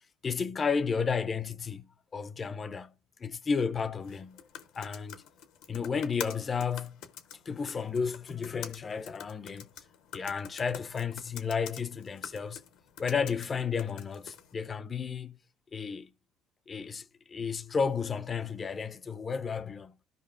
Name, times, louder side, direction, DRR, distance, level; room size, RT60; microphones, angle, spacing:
voice 1, 0.2-2.9 3.2-4.5 4.8-5.2 5.7-7.0 7.5-9.7 10.1-12.6 13.0-15.4 15.7-16.1 16.7-19.9, left 5 dB, 30° left, 0.4 m, -32 dB
typing on a computer, 4.0-14.5, left 9 dB, 75° left, 0.7 m, -47 dB
13.5 x 5.1 x 2.5 m
cardioid pair, 120°, 0 cm